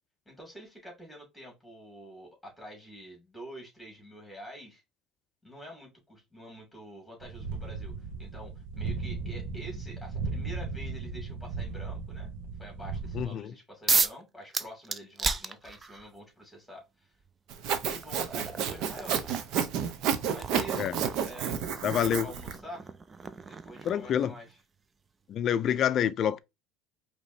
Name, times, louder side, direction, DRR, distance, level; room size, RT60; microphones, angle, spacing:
voice 1, 0.3-4.8 5.4-12.3 12.6-17.1 17.9-19.4 20.3-20.9 21.2-22.9 23.5-24.6, equal, 5° left, 2.6 m, -47 dB
sound 1, 7.2-13.2, right 4 dB, 85° right, 1.1 m, -36 dB
voice 2, 13.1-13.5 20.8-20.9 21.8-22.3 23.8-24.3 25.3-26.4, left 9 dB, 45° left, 0.4 m, -27 dB
sound 2, 13.9-14.2 14.5-16.1 17.2-17.3 17.8-24.5, right 4 dB, 20° right, 0.4 m, -34 dB
Sawing, 17.5-22.6, right 8 dB, 60° right, 0.8 m, -31 dB
5.0 x 2.9 x 2.7 m
cardioid pair, 125°, 0 cm